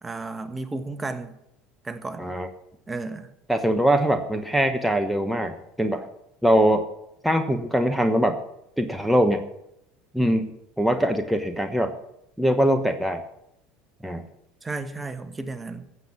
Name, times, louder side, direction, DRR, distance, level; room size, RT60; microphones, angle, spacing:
voice 1, 0.0-1.3 1.8-2.3 2.9-3.3 14.6-15.8, right 3 dB, 20° right, 10 dB, 1.3 m, -33 dB
voice 2, 3.5-6.1 6.4-6.8 7.2-8.4 8.8-9.5 10.1-11.9 12.4-13.2 14.0-14.2, equal, ahead, 6 dB, 1.2 m, -22 dB
15.5 x 7.6 x 7.3 m, 0.79 s
hypercardioid pair, 70°, 0 cm